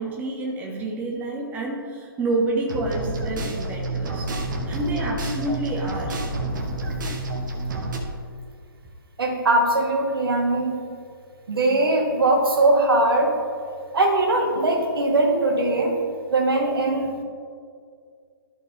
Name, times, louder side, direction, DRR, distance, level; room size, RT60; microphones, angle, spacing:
voice 1, 0.0-4.3 4.7-6.2, right 2 dB, 15° right, -1 dB, 1.0 m, -28 dB
sound 1, 2.7-8.0, right 2 dB, 55° right, 1.3 m, -29 dB
voice 2, 9.2-10.8 11.5-13.3 13.9-15.9 16.3-17.2, right 2 dB, 70° right, 2 dB, 1.6 m, -20 dB
13.5 x 4.5 x 3.3 m, 2.2 s
figure-of-eight pair, 135°, 12 cm